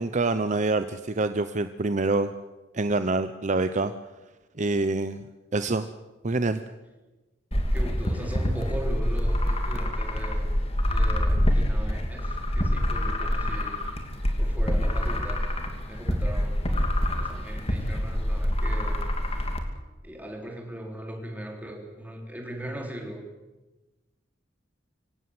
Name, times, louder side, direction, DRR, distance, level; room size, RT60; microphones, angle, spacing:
voice 1, 0.0-2.3 2.7-3.9 4.6-5.3 5.5-5.9 6.2-6.6, right 3 dB, 40° right, 10 dB, 0.8 m, -26 dB
sound 1, 7.5-19.6, equal, 35° left, 2.6 m, -26 dB
voice 2, 7.7-10.5 10.8-13.8 14.4-15.4 15.9-16.8 17.2-19.1 20.0-23.2, right 1 dB, 10° right, 2 dB, 3.7 m, -39 dB
25.0 x 17.0 x 7.9 m, 1.1 s
head